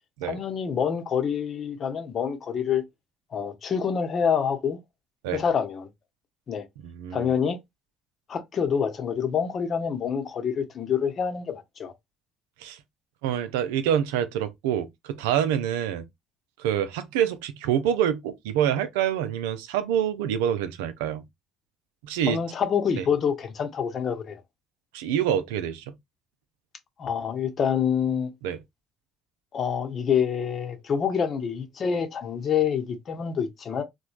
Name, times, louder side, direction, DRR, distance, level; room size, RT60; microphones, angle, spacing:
voice 1, 0.2-2.8 3.3-4.8 5.3-5.9 6.5-6.7 7.1-7.6 8.3-11.9 22.3-24.4 27.0-28.3 29.5-33.8, left 7 dB, 50° left, 0.8 m, -26 dB
voice 2, 6.8-7.3 12.6-12.8 13.2-16.0 16.6-21.2 22.0-22.4 23.0-23.1 24.9-25.9 28.4-28.6, right 9 dB, 85° right, 0.4 m, -26 dB
3.0 x 2.2 x 2.3 m
hypercardioid pair, 55°, 0 cm